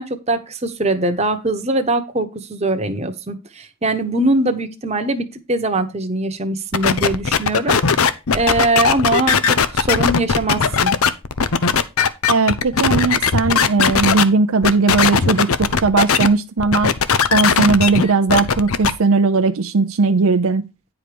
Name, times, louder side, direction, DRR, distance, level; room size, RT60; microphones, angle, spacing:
voice 1, 0.0-7.8 8.3-10.9, right 2 dB, 30° right, 1.1 m, -21 dB
sound 1, 6.7-14.2 14.6-16.3 16.6-18.9, left 6 dB, 80° left, 0.7 m, -17 dB
voice 2, 12.3-15.5 15.8-16.9 17.3-20.6, right 4 dB, 75° right, 0.6 m, -17 dB
9.8 x 4.9 x 5.1 m
head